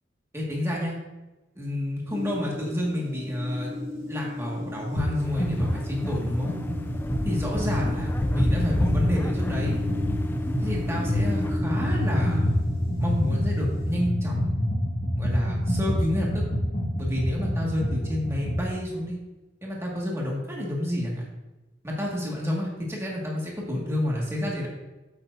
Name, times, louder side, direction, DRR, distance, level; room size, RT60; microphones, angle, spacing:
voice 1, 0.3-1.0 1.6-3.7 4.1-6.5 7.2-9.8 10.6-12.6 13.0-14.5 15.2-16.4 17.0-19.2 19.6-21.2 21.8-24.7, left 1 dB, 15° right, -3 dB, 1.8 m, -29 dB
sound 1, 2.1-14.0, left 1 dB, 30° right, 1.9 m, -36 dB
sound 2, 5.0-5.1 5.4-18.7, left 1 dB, 40° left, 2.0 m, -27 dB
sound 3, 5.2-11.6, left 1 dB, 10° left, 0.3 m, -33 dB
8.3 x 7.6 x 2.6 m, 1.1 s
head